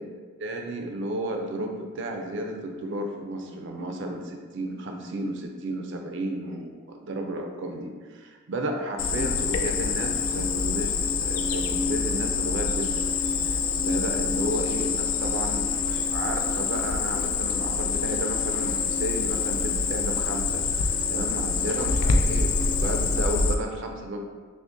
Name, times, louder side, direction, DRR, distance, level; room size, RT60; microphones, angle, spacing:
voice 1, 0.4-13.0 13.4-24.2, right 1 dB, 60° right, 3 dB, 0.5 m, -33 dB
Cricket, 9.0-23.5, left 4 dB, 85° left, 0.4 m, -26 dB
6.0 x 2.1 x 2.5 m, 1.5 s
head